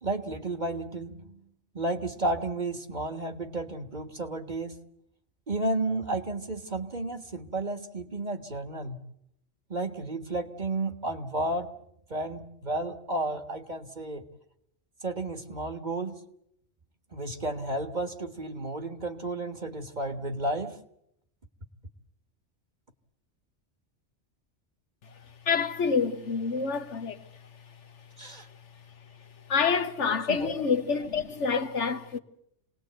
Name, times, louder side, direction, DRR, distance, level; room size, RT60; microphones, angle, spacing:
voice 1, 0.0-1.5 1.7-4.8 5.5-9.0 9.7-11.7 12.1-14.2 15.0-16.2 17.1-20.8 28.2-28.5 30.3-30.5, right 2 dB, 40° right, 1.7 m, -32 dB
voice 2, 25.4-27.4 29.5-32.2, left 5 dB, 75° left, 1.5 m, -27 dB
27.0 x 19.0 x 8.0 m
omnidirectional pair, 1.2 m